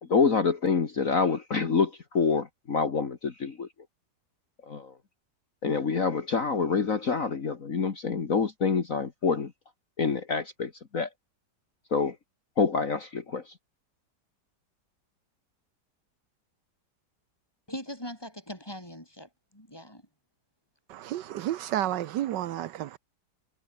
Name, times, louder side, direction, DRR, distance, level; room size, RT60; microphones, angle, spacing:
voice 1, 0.0-3.7 4.6-5.0 5.6-9.5 10.0-11.1 11.9-12.2 12.6-13.5, left 5 dB, 50° left, 2.1 m, -27 dB
voice 2, 17.7-20.0, equal, 10° left, 7.0 m, -41 dB
voice 3, 20.9-23.0, right 12 dB, 80° right, 1.4 m, -31 dB
omnidirectional pair, 1.9 m